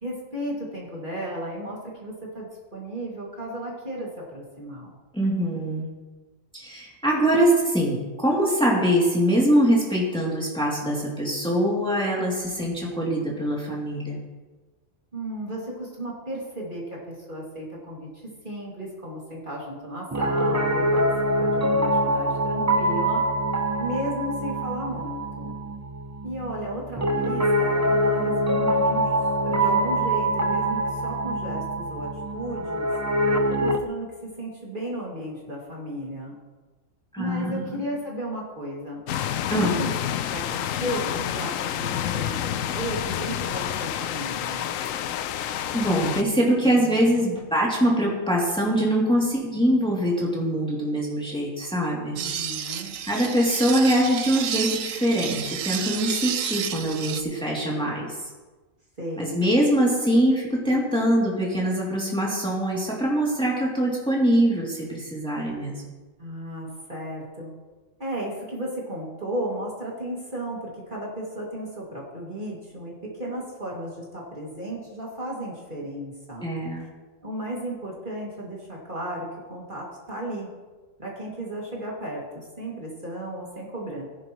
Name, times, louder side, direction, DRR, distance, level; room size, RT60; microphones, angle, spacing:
voice 1, 0.0-4.9 15.1-21.0 21.4-23.2 23.8-25.5 26.2-29.1 29.4-32.9 33.6-34.1 34.4-36.4 37.2-39.0 39.5-44.7 52.1-53.0 59.0-59.4 66.2-67.5 68.0-76.5 77.2-80.5 81.0-84.1, right 1 dB, 40° right, -4 dB, 2.5 m, -34 dB
voice 2, 5.1-5.8 6.5-14.2 37.1-37.8 39.5-39.7 45.7-52.2 53.0-58.2 59.2-65.8 76.4-76.8, equal, 5° left, -4 dB, 2.6 m, -23 dB
Piano, 20.1-33.8, right 1 dB, 20° right, 0.4 m, -24 dB
sound 1, 39.1-46.2, left 10 dB, 85° left, 1.0 m, -29 dB
sound 2, 52.2-57.2, right 9 dB, 80° right, 1.1 m, -31 dB
18.5 x 10.5 x 3.1 m, 1.2 s
omnidirectional pair, 1.4 m